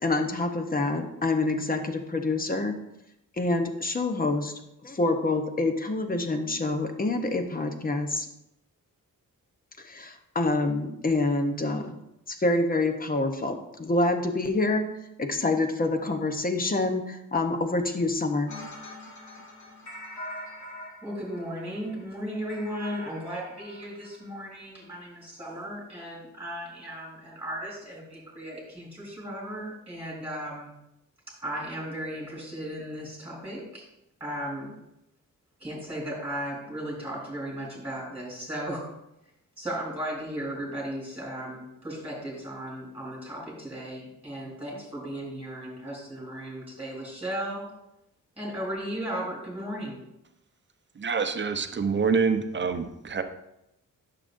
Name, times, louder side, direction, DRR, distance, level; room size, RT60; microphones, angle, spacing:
voice 1, 0.0-2.8 3.4-4.5 4.8-8.3 9.8-11.9 12.3-14.8 15.2-18.5, left 2 dB, 25° left, 6 dB, 0.9 m, -27 dB
sound 1, 18.5-24.6, left 1 dB, 60° left, 1.9 m, -44 dB
voice 2, 21.0-30.8 31.3-33.9 34.2-34.8 35.6-38.9 39.6-47.7 48.4-50.0, equal, 5° right, -4 dB, 3.3 m, -36 dB
voice 3, 51.0-53.2, right 5 dB, 35° right, 7 dB, 0.7 m, -26 dB
11.0 x 6.7 x 2.6 m, 0.85 s
wide cardioid pair, 115°, 33 cm